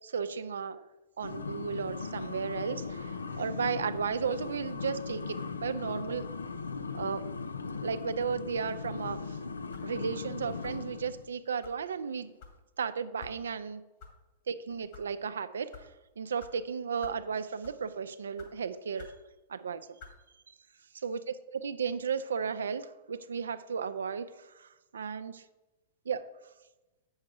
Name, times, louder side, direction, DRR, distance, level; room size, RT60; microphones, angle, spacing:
voice 1, 0.0-0.8 1.2-6.3 6.9-7.3 7.8-9.4 9.8-12.3 12.8-13.8 14.5-15.9 16.2-19.2 19.5-20.0 20.5-20.6 20.9-25.4 26.1-26.3, right 6 dB, 80° right, 11 dB, 0.5 m, -34 dB
sound 1, 1.2-11.3, left 4 dB, 90° left, 0.5 m, -38 dB
sound 2, 9.7-10.0 10.6-10.9 11.6-11.8 12.4-12.6 13.2-13.4 14.0-14.1 14.7-15.1 15.7-15.9 16.4-16.5 17.0-17.2 17.6-17.9 18.4-18.5 19.0-19.2 20.0-20.2, left 4 dB, 55° left, 2.1 m, -49 dB
8.4 x 6.4 x 4.9 m, 1.1 s
hypercardioid pair, 105°, 0 cm